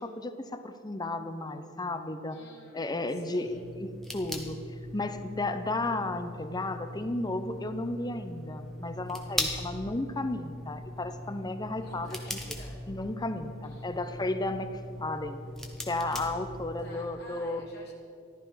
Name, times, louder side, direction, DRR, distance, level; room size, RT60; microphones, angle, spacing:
voice 1, 0.0-2.4 2.7-4.6 4.9-12.4 12.9-14.7 15.0-15.4 15.9-17.7, left 2 dB, 20° left, 9 dB, 0.7 m, -33 dB
voice 2, 2.3-3.6 11.8-12.8 13.6-13.9 16.8-17.9, left 1 dB, 55° left, -3 dB, 2.5 m, -52 dB
sound 1, 3.5-17.0, left 1 dB, ahead, 1.3 m, -40 dB
14.0 x 12.5 x 5.7 m, 2.5 s
head